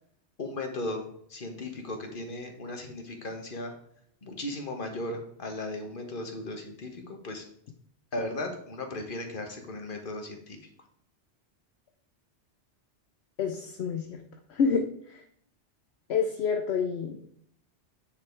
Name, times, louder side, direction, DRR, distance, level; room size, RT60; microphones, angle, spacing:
voice 1, 0.4-3.7 4.2-7.4 8.1-10.6, left 2 dB, 50° left, 3 dB, 1.7 m, -36 dB
voice 2, 13.4-14.2 14.5-15.2 16.1-17.2, left 6 dB, 70° left, 4 dB, 1.0 m, -28 dB
9.3 x 5.4 x 4.6 m, 0.67 s
omnidirectional pair, 1.2 m